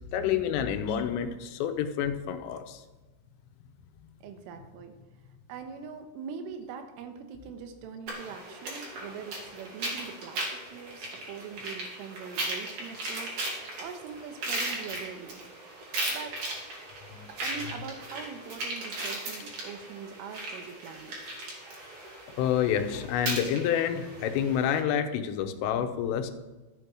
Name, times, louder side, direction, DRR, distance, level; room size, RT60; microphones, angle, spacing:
voice 1, 0.1-2.8 17.1-17.3 22.4-26.3, left 9 dB, 90° left, 8 dB, 3.5 m, -28 dB
voice 2, 4.2-5.0 5.5-15.5 16.1-16.4 17.3-21.2, right 6 dB, 85° right, 6 dB, 3.7 m, -42 dB
sound 1, 8.1-24.8, right 1 dB, 45° right, 3.7 m, -37 dB
12.5 x 8.2 x 6.2 m, 1.2 s
omnidirectional pair, 5.6 m